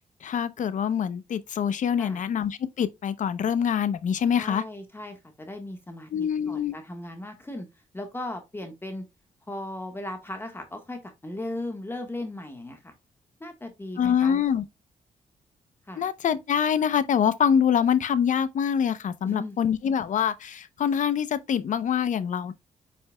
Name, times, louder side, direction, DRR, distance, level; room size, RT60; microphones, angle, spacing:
voice 1, 0.2-4.6 6.1-6.8 14.0-14.6 16.0-22.5, left 8 dB, 65° left, 0.7 m, -25 dB
voice 2, 4.3-7.7 7.9-9.0 9.5-12.9 13.4-14.4 15.9-16.0 19.2-19.6, left 1 dB, 15° left, 1.4 m, -37 dB
8.6 x 5.1 x 2.2 m
cardioid pair, 105°, 14 cm